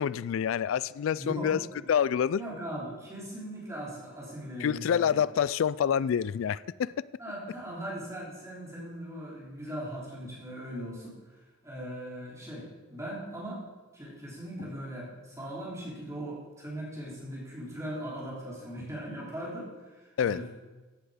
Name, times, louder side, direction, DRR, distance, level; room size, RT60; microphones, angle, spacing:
voice 1, 0.0-1.6 1.9-2.4 4.6-6.9 20.2-20.4, left 8 dB, 65° left, 19 dB, 0.3 m, -27 dB
voice 2, 1.1-1.9 2.3-5.2 7.2-11.4 11.6-13.6 13.9-20.5, right 1 dB, 15° right, -5 dB, 3.1 m, -39 dB
14.5 x 7.9 x 5.0 m, 1.3 s
head